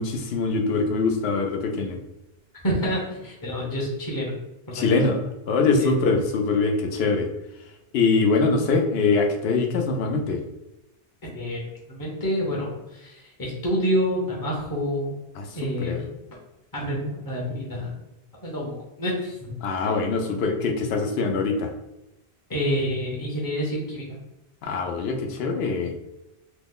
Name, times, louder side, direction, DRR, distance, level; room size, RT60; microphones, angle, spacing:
voice 1, 0.0-2.0 4.7-5.2 5.5-7.3 7.9-10.4 15.4-15.5 15.8-16.0 19.6-21.7 24.6-25.9, left 4 dB, 75° left, 4 dB, 0.8 m, -23 dB
voice 2, 2.6-4.3 4.7-5.0 5.8-6.1 11.2-15.1 15.5-16.1 16.7-18.0 18.4-19.5 19.8-19.9 22.5-24.2, equal, 25° left, -4 dB, 0.6 m, -28 dB
3.0 x 2.0 x 3.5 m, 0.93 s
omnidirectional pair, 1.1 m